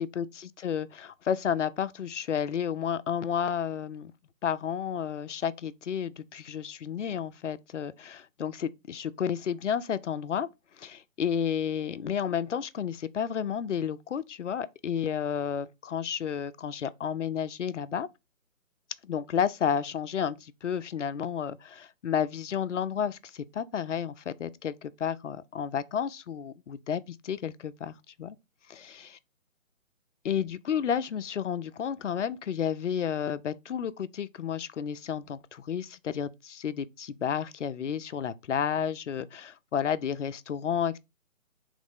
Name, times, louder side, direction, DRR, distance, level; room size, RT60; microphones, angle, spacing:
voice 1, 0.0-4.1 4.4-10.5 10.8-18.1 19.0-28.4 30.2-41.0, left 8 dB, 60° left, 0.5 m, -31 dB
4.0 x 3.2 x 3.5 m
hypercardioid pair, 160°, 42 cm